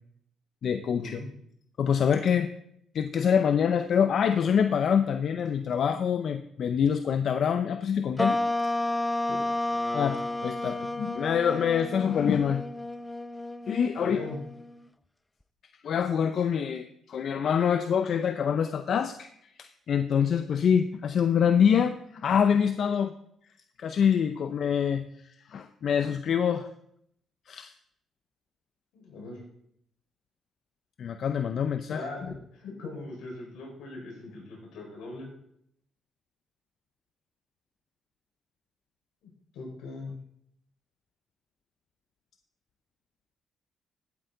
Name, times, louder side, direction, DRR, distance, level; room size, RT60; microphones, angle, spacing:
voice 1, 0.6-1.2 1.8-2.5 2.9-8.4 9.9-12.6 13.7-14.2 15.8-19.3 19.6-23.1 23.8-25.1 25.5-26.7 27.5-27.7 31.0-32.0, left 7 dB, 60° left, 8 dB, 0.6 m, -25 dB
sound 1, 8.2-14.9, left 1 dB, 10° left, 0.4 m, -31 dB
voice 2, 14.0-14.4 28.9-29.4 31.9-32.2 32.5-35.3 39.2-40.1, left 3 dB, 85° left, -1 dB, 4.6 m, -40 dB
15.0 x 8.4 x 3.9 m, 0.72 s
cardioid pair, 85°, 0 cm